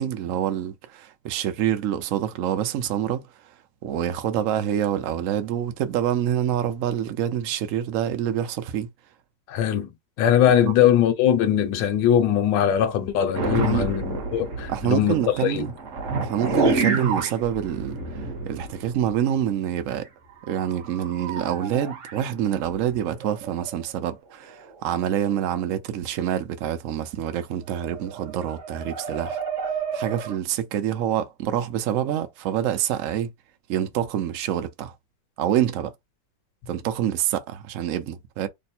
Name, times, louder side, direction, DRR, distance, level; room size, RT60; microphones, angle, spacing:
voice 1, 0.0-3.2 3.8-8.9 10.6-10.7 13.5-13.9 14.7-15.7 16.2-20.1 20.5-29.4 29.9-33.3 33.7-34.9 35.4-35.9 36.7-38.5, right 10 dB, 70° right, 0.7 m, -26 dB
voice 2, 9.5-9.9 10.2-15.7, left 10 dB, 75° left, 1.4 m, -21 dB
sound 1, 13.3-19.2 19.5-19.6 19.9-20.0 20.4-24.1 24.7-24.9 25.2-25.5 27.7-30.4, right 3 dB, 50° right, 1.1 m, -30 dB
3.3 x 2.1 x 4.2 m
omnidirectional pair, 2.1 m